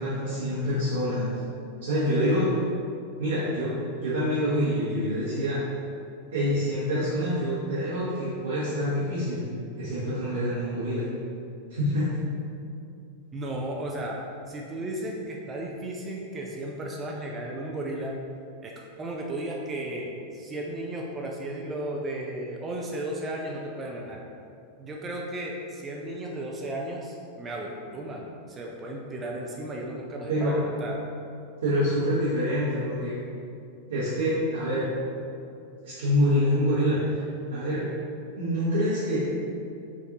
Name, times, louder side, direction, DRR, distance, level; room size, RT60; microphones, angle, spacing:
voice 1, 0.0-1.3 1.8-2.6 3.2-3.7 4.0-5.6 6.3-9.5 9.8-11.1 11.7-12.1 30.3-30.6 31.6-33.1 33.9-34.9 35.8-37.2 37.5-37.9 38.4-39.3, equal, 65° right, -10 dB, 0.9 m, -26 dB
voice 2, 13.3-14.2 14.5-18.1 18.6-24.2 24.8-30.9, right 1 dB, 20° right, -1 dB, 0.4 m, -34 dB
4.9 x 2.6 x 2.8 m, 2.6 s
figure-of-eight pair, 90°, 0 cm